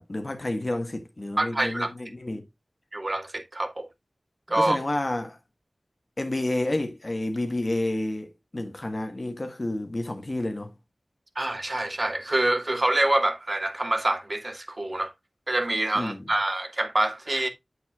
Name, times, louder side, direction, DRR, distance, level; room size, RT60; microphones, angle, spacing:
voice 1, 0.0-2.5 4.5-5.4 6.2-10.7 15.9-16.2, left 1 dB, 45° left, 1.6 m, -30 dB
voice 2, 1.4-1.9 2.9-3.9 4.5-4.8 11.4-15.1 15.5-17.5, right 1 dB, 40° right, 2.1 m, -26 dB
8.0 x 7.9 x 2.4 m
wide cardioid pair, 60°, 0 cm